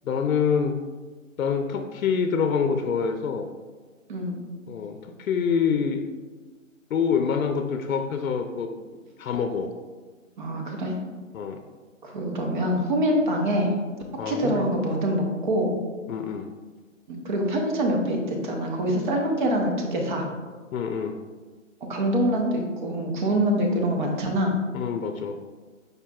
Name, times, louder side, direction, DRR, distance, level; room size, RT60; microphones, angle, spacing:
voice 1, 0.0-0.8 1.4-3.5 4.7-6.0 6.9-8.7 9.2-9.7 11.3-11.6 14.2-14.6 16.1-16.5 20.7-21.1 24.7-25.4, left 6 dB, 85° left, 7 dB, 0.5 m, -26 dB
voice 2, 10.4-10.9 12.0-13.7 14.3-15.7 17.1-20.3 21.8-24.6, equal, 35° right, 1 dB, 0.8 m, -25 dB
5.0 x 4.5 x 2.3 m, 1.4 s
hypercardioid pair, 150°, 40 cm